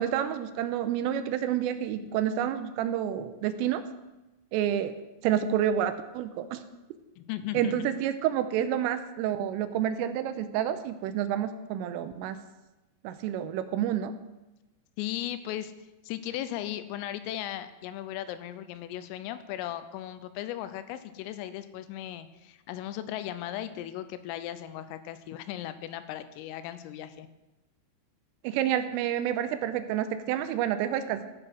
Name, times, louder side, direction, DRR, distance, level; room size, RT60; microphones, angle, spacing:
voice 1, 0.0-3.8 4.5-4.9 5.2-6.6 7.5-12.4 13.0-14.1 28.4-31.3, right 10 dB, 85° right, 10 dB, 3.2 m, -29 dB
voice 2, 7.2-7.7 15.0-15.7 16.1-27.3, left 12 dB, 85° left, 12 dB, 3.3 m, -37 dB
15.0 x 6.9 x 6.2 m, 1.0 s
omnidirectional pair, 5.9 m